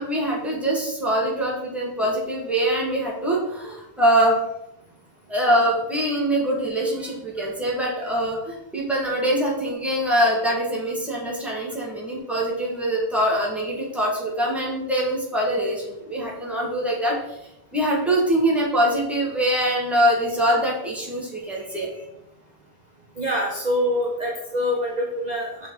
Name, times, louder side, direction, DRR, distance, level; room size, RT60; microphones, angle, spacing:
voice 1, 0.0-4.3 5.3-17.4 17.7-22.0, right 1 dB, ahead, -4 dB, 1.7 m, -23 dB
voice 2, 23.2-25.7, left 1 dB, 35° right, -1 dB, 0.7 m, -25 dB
6.1 x 4.3 x 4.9 m, 0.84 s
omnidirectional pair, 1.9 m